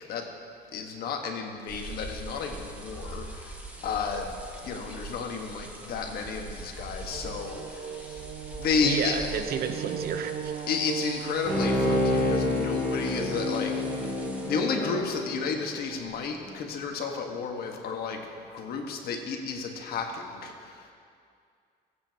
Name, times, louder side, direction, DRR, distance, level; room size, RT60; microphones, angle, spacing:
voice 1, 0.7-4.4 4.6-8.3 8.6-9.3 10.6-14.2 14.4-18.2 18.5-20.9, left 5 dB, 65° left, 3 dB, 1.4 m, -32 dB
sound 1, 1.7-14.5, right 2 dB, 10° right, 1.5 m, -43 dB
sound 2, 7.1-15.1, right 7 dB, 40° right, 0.6 m, -37 dB
voice 2, 8.8-10.5, right 7 dB, 65° right, 8 dB, 0.9 m, -31 dB
Bowed string instrument, 11.5-16.1 16.5-16.6, left 2 dB, 10° left, 2.5 m, -29 dB
20.0 x 8.6 x 2.9 m, 2.3 s
cardioid pair, 110°, 17 cm